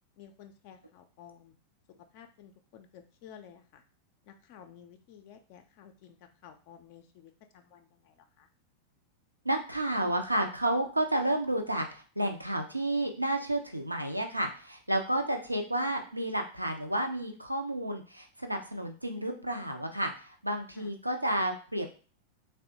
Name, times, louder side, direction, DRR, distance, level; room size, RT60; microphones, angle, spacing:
voice 1, 0.2-1.5 2.1-3.8 4.2-8.5 20.7-20.9, left 8 dB, 45° left, 6 dB, 0.3 m, -53 dB
voice 2, 9.4-22.0, right 1 dB, 85° right, 5 dB, 0.5 m, -31 dB
3.3 x 2.1 x 2.8 m, 0.38 s
figure-of-eight pair, 90°, 0 cm